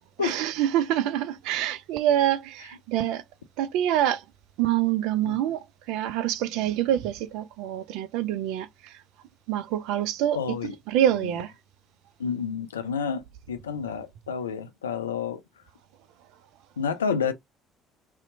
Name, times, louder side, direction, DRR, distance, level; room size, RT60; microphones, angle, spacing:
voice 1, 0.2-3.2 3.6-4.2 4.6-8.9 9.5-10.4 10.9-11.5, right 11 dB, 60° right, 0.3 m, -26 dB
voice 2, 10.3-10.7 11.2-11.3 12.2-15.4 16.8-17.3, left 6 dB, 75° left, 0.3 m, -29 dB
2.7 x 2.0 x 2.5 m
figure-of-eight pair, 55°, 0 cm